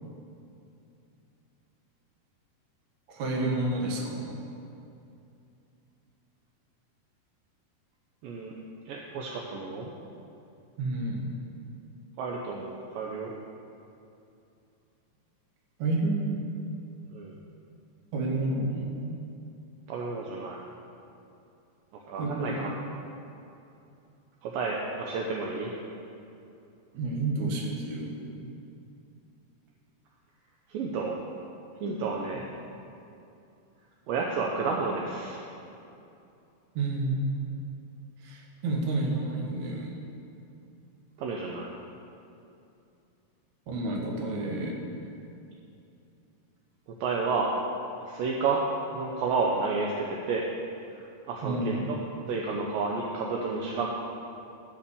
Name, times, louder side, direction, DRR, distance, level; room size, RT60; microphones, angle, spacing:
voice 1, 3.1-4.4 10.8-11.3 15.8-16.3 18.1-19.1 22.2-22.6 26.9-28.5 36.7-37.3 38.2-40.0 43.7-44.8 51.4-51.9, right 2 dB, 60° right, 0 dB, 2.4 m, -30 dB
voice 2, 8.2-8.6 8.9-9.9 12.2-13.3 17.1-17.4 19.9-20.6 22.1-22.7 24.4-25.7 30.7-31.2 31.8-32.4 34.1-35.5 41.2-41.7 47.0-47.5 48.0-48.6 48.9-50.5 50.9-52.0 52.3-53.9, right 4 dB, 75° right, -1 dB, 2.3 m, -31 dB
13.0 x 5.9 x 6.9 m, 2.7 s
omnidirectional pair, 4.4 m